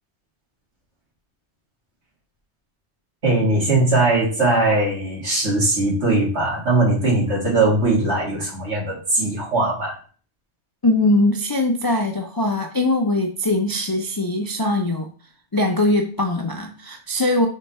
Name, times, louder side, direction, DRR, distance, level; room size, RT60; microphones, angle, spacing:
voice 1, 3.2-9.9, right 2 dB, 65° right, -4 dB, 2.7 m, -20 dB
voice 2, 10.8-15.1 15.5-17.5, left 2 dB, 30° left, 3 dB, 0.4 m, -21 dB
5.4 x 4.1 x 4.3 m, 0.40 s
omnidirectional pair, 1.2 m